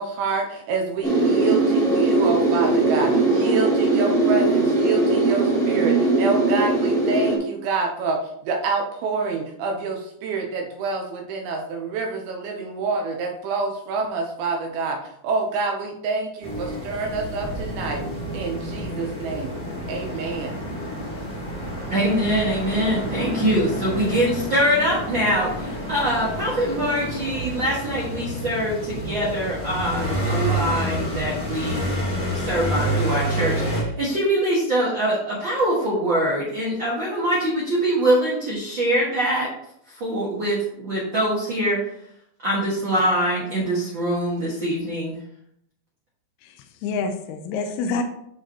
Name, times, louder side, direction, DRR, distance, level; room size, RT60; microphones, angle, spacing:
voice 1, 0.0-15.0 15.2-18.1 18.3-19.6 19.9-20.6, right 4 dB, 75° right, 2 dB, 2.6 m, -27 dB
sound 1, 1.0-7.4, right 2 dB, ahead, 1.8 m, -20 dB
sound 2, 16.4-33.8, right 1 dB, 20° left, 2.1 m, -29 dB
voice 2, 21.9-31.9 32.3-39.5 39.9-41.8 42.4-45.2, right 1 dB, 45° right, -6 dB, 1.5 m, -23 dB
voice 3, 46.4-48.0, left 4 dB, 80° left, 5 dB, 2.6 m, -27 dB
11.5 x 5.0 x 2.9 m, 0.72 s
omnidirectional pair, 4.8 m